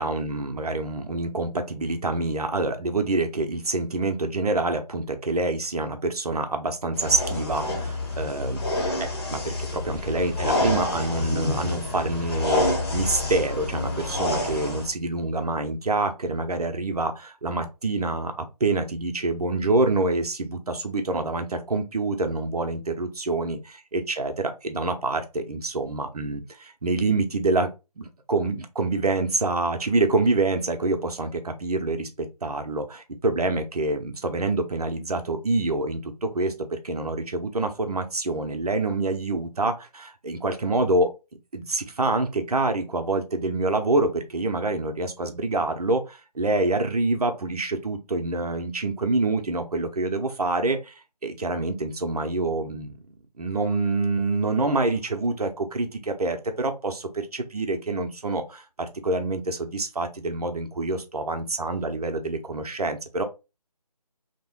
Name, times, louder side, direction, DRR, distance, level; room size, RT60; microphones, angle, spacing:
voice 1, 0.0-8.6 9.0-23.6 23.9-27.7 28.0-41.1 41.5-50.9 51.2-53.0 53.4-63.2, right 2 dB, 65° right, 0.7 m, -26 dB
sound 1, 7.0-14.9, left 2 dB, 40° left, 0.9 m, -28 dB
3.0 x 2.1 x 2.9 m
figure-of-eight pair, 155°, 21 cm